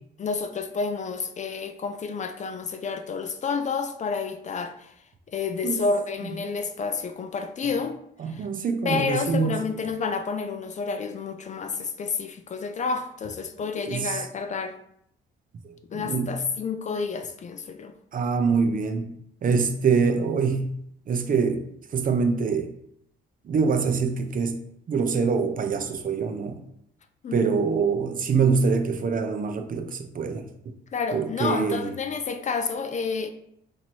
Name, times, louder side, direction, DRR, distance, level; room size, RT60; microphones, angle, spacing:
voice 1, 0.2-4.9 5.3-8.0 8.3-8.4 8.8-14.8 15.9-17.9 27.2-27.6 30.9-33.3, left 5 dB, 40° left, 9 dB, 0.4 m, -30 dB
voice 2, 8.2-9.6 13.9-14.2 15.6-16.4 18.1-19.1 19.4-20.8 21.1-21.6 21.9-22.7 23.5-24.6 24.9-26.6 27.3-30.7 31.1-31.9, right 5 dB, 45° right, 7 dB, 0.5 m, -25 dB
3.0 x 2.7 x 4.4 m, 0.72 s
cardioid pair, 90°, 20 cm